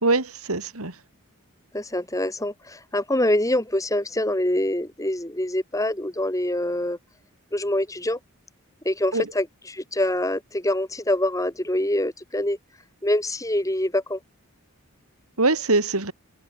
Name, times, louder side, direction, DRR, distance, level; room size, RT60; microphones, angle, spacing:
voice 1, 0.0-0.9 9.1-9.3 15.4-16.1, right 3 dB, 75° right, 3.2 m, -23 dB
voice 2, 1.7-7.0 7.5-8.2 8.8-12.6 13.0-14.2, left 1 dB, 15° left, 2.7 m, -25 dB
head